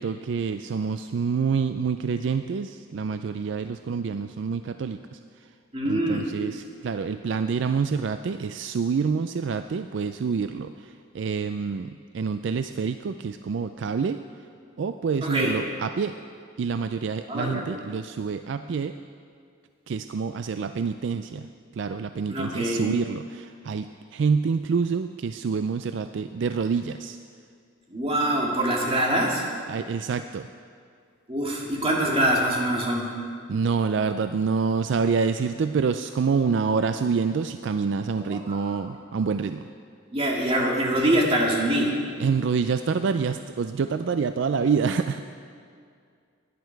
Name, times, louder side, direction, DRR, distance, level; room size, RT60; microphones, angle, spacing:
voice 1, 0.0-5.0 5.9-10.7 11.1-11.9 12.1-14.2 14.8-16.1 16.6-18.9 19.9-21.4 21.8-23.9 24.1-27.2 29.7-30.5 33.5-39.6 42.2-45.2, right 5 dB, 60° right, 9 dB, 0.3 m, -27 dB
voice 2, 5.7-6.3 15.2-15.5 17.3-17.7 22.3-22.9 27.9-29.4 31.3-33.1 38.2-38.9 40.1-41.9, right 1 dB, 25° right, -2 dB, 2.0 m, -24 dB
17.0 x 10.5 x 4.6 m, 2.2 s
head